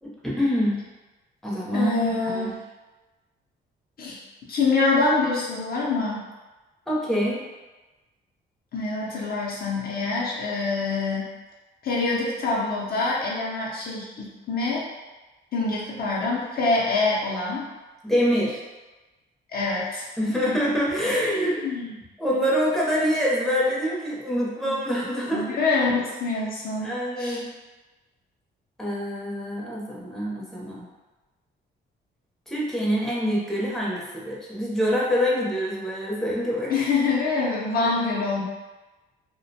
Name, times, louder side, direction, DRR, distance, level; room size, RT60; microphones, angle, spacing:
voice 1, 0.0-0.8 1.4-2.5 6.9-7.4 18.0-18.6 20.2-21.6 22.2-25.5 26.8-27.4 28.8-30.9 32.5-36.9, equal, ahead, -6 dB, 0.7 m, -25 dB
voice 2, 1.7-2.6 4.0-4.2 4.5-6.3 8.7-11.3 11.8-14.8 15.5-17.7 19.5-20.6 21.1-22.0 24.6-24.8 25.3-27.4 36.7-38.4, left 3 dB, 50° left, -4 dB, 0.5 m, -26 dB
2.4 x 2.1 x 2.7 m, 1.2 s
cardioid pair, 90°, 20 cm